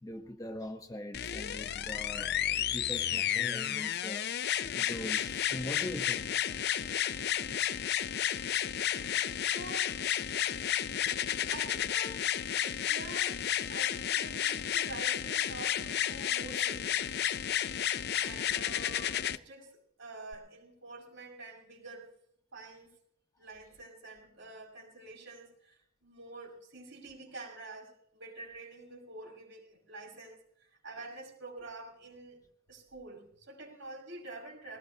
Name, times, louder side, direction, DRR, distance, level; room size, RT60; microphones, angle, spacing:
voice 1, 0.0-4.3 4.7-6.4 6.9-7.3 9.0-9.3 10.3-10.6 11.1-11.5, left 1 dB, 15° left, 0.9 m, -43 dB
sound 1, 1.1-19.4 20.3-20.4, left 10 dB, 50° left, 0.5 m, -32 dB
voice 2, 8.2-8.6 9.0-9.9 10.4-10.7 11.2-13.4 13.7-17.2 18.2-22.1 22.5-22.9 23.4-32.4 32.7-34.8, right 2 dB, 55° right, 5.7 m, -47 dB
21.0 x 19.0 x 2.8 m
head